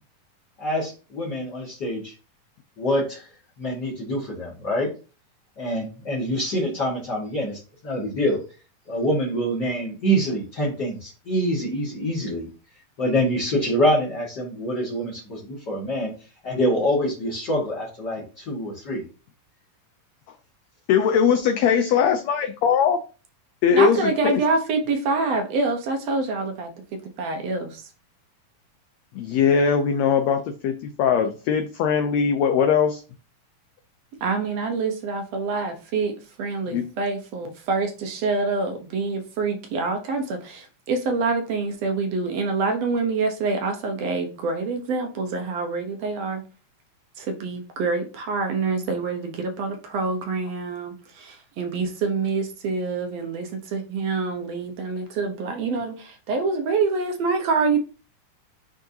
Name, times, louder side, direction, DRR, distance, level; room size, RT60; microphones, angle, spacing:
voice 1, 0.6-2.1 2.8-3.3 3.6-4.9 5.6-8.4 8.9-12.5 13.0-16.1 16.4-19.0, equal, 40° left, -5 dB, 1.9 m, -25 dB
voice 2, 20.9-23.0 23.6-24.0 24.2-24.4 29.1-33.0 36.7-36.8, left 7 dB, 90° left, 7 dB, 1.5 m, -20 dB
voice 3, 23.7-26.7 27.2-27.9 34.2-46.4 47.2-57.8, right 4 dB, 70° right, 4 dB, 1.6 m, -26 dB
10.5 x 3.8 x 2.7 m, 0.35 s
omnidirectional pair, 3.8 m